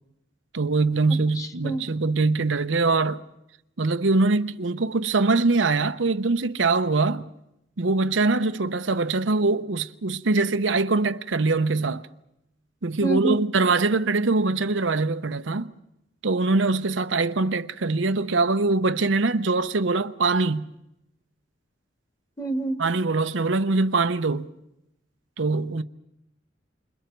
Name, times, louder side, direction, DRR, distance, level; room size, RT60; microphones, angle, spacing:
voice 1, 0.5-3.2 3.8-7.3 7.8-12.1 12.8-15.7 16.2-20.7 22.8-24.5 25.4-25.8, right 3 dB, 85° right, 0.8 m, -23 dB
voice 2, 1.3-1.8 13.0-13.4 22.4-22.8, right 2 dB, 20° left, 1.6 m, -27 dB
29.0 x 26.5 x 4.6 m
head